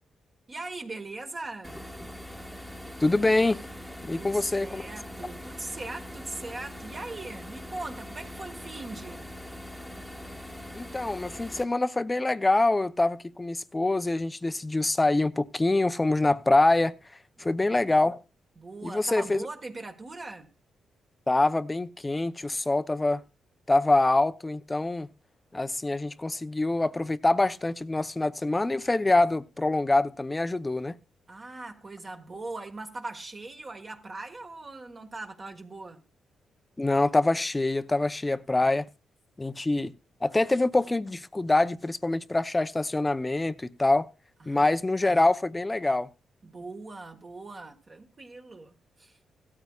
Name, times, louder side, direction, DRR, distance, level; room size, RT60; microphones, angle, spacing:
voice 1, 0.5-1.9 4.1-9.3 17.4-17.6 18.6-20.5 31.3-36.0 44.4-44.7 46.4-49.2, right 2 dB, 35° right, 1.4 m, -40 dB
sound 1, 1.6-11.6, left 1 dB, 5° right, 1.2 m, -42 dB
voice 2, 3.0-3.7 4.0-4.8 10.7-16.9 17.4-18.2 18.8-19.5 21.3-23.2 23.7-25.1 25.5-31.0 36.8-38.9 39.4-39.9 40.2-44.1 44.5-46.1, left 2 dB, 15° left, 0.6 m, -25 dB
16.5 x 13.0 x 2.3 m
cardioid pair, 100°, 0 cm